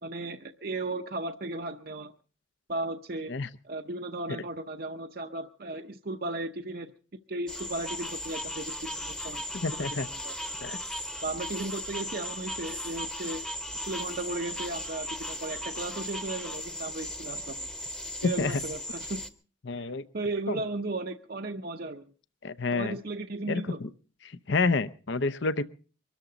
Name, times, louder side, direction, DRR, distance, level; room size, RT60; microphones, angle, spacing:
voice 1, 0.0-2.1 2.7-3.3 3.6-6.9 7.3-9.4 9.8-10.3 11.2-13.4 13.9-17.7 18.2-19.3 19.8-19.9 20.1-22.0 22.7-23.8, right 2 dB, 45° right, 5 dB, 0.7 m, -35 dB
sound 1, 7.5-19.3, equal, 5° left, 0.9 m, -37 dB
voice 2, 9.5-10.1 10.6-10.8 18.2-18.6 19.6-20.0 20.5-20.6 22.4-23.0 23.5-23.9 24.2-25.6, left 3 dB, 60° left, 14 dB, 0.7 m, -29 dB
23.5 x 13.5 x 3.9 m, 0.39 s
head